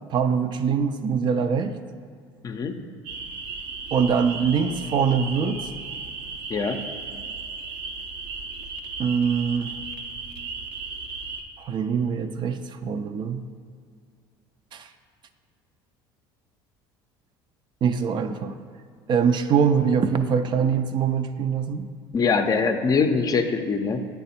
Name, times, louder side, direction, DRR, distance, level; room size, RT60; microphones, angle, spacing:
voice 1, 0.1-1.8 3.9-5.7 9.0-9.8 11.6-13.5 14.7-14.9 17.8-18.6 19.1-21.9, right 6 dB, 45° right, 9 dB, 0.4 m, -23 dB
voice 2, 2.4-2.8 6.5-6.8 22.1-24.1, left 5 dB, 35° left, 7 dB, 0.5 m, -23 dB
sound 1, 3.0-11.4, right 4 dB, 80° right, 0.7 m, -35 dB
8.2 x 3.4 x 4.2 m, 2.2 s
supercardioid pair, 80°, 11 cm